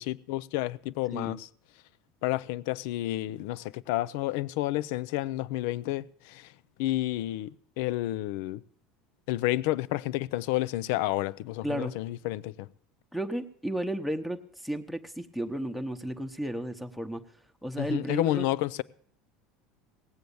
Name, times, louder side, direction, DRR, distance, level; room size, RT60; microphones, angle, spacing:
voice 1, 0.0-1.5 2.2-6.5 6.8-8.6 9.3-12.7 17.8-18.8, left 16 dB, 75° left, 0.5 m, -30 dB
voice 2, 11.6-11.9 13.1-17.2 17.6-18.4, right 1 dB, ahead, 1.0 m, -33 dB
17.5 x 7.8 x 7.0 m
supercardioid pair, 115°, 0 cm